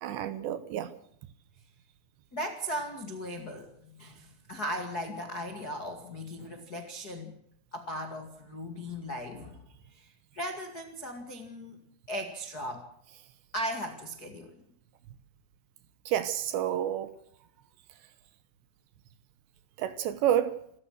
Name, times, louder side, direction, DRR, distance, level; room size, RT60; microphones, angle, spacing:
voice 1, 0.0-0.9 16.1-17.1 19.8-20.6, right 10 dB, 75° right, 3.0 m, -29 dB
voice 2, 2.3-7.3 7.7-9.6 9.9-11.8 12.1-12.9 13.5-14.6, equal, 50° left, 1.1 m, -37 dB
28.0 x 14.5 x 6.5 m
omnidirectional pair, 5.8 m